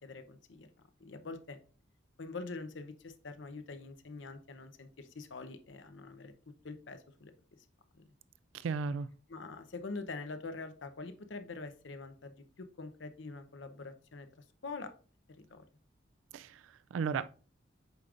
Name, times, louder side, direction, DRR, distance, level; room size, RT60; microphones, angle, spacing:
voice 1, 0.0-0.7 1.0-1.6 2.2-7.3 9.3-14.3 14.6-14.9 15.3-15.7, left 3 dB, 75° left, 0.7 m, -45 dB
voice 2, 8.5-9.1 16.3-17.3, right 5 dB, 85° right, 0.3 m, -35 dB
7.9 x 5.1 x 2.5 m
head